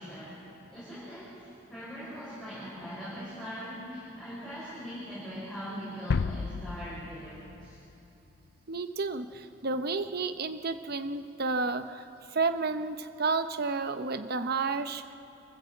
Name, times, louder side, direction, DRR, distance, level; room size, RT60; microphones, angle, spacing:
voice 1, 0.0-7.8, equal, 5° left, -11 dB, 6.1 m, -41 dB
sound 1, 6.1-8.6, left 5 dB, 60° left, 0.4 m, -33 dB
voice 2, 8.7-12.1 12.3-15.0, right 4 dB, 55° right, 10 dB, 0.9 m, -31 dB
27.0 x 14.5 x 7.8 m, 2.9 s
head